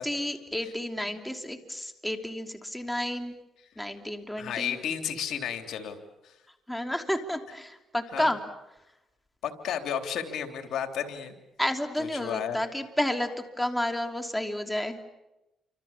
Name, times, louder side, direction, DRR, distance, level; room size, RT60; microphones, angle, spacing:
voice 1, 0.0-3.3 3.8-4.8 6.7-8.4 11.6-15.0, left 1 dB, 5° left, 5 dB, 3.1 m, -31 dB
voice 2, 4.4-6.0 6.2-6.4 8.1-8.3 9.4-11.3 12.0-12.6, left 8 dB, 70° left, 6 dB, 3.3 m, -32 dB
29.0 x 26.0 x 7.3 m, 0.96 s
cardioid pair, 90°, 0 cm